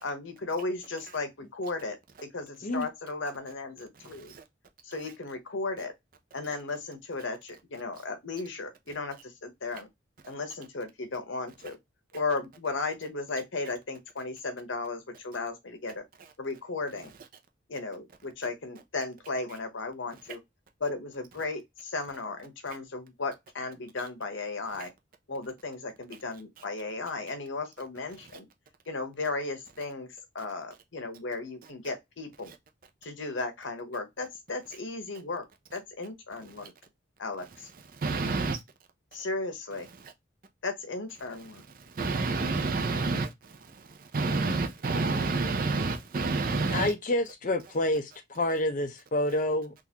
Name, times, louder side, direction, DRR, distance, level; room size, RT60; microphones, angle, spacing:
voice 1, 0.0-2.0 2.2-4.3 4.8-5.9 6.3-9.9 10.3-11.8 12.1-16.0 16.4-17.1 17.7-20.4 20.8-24.9 25.3-28.5 28.9-32.5 33.0-35.4 35.7-36.7 37.2-37.7 39.1-39.9 40.6-41.6, left 3 dB, 80° left, 1.0 m, -35 dB
voice 2, 38.0-38.6 41.9-46.9, right 3 dB, 45° right, 0.5 m, -29 dB
voice 3, 46.7-49.7, left 1 dB, 40° left, 0.6 m, -28 dB
3.7 x 2.5 x 2.8 m
head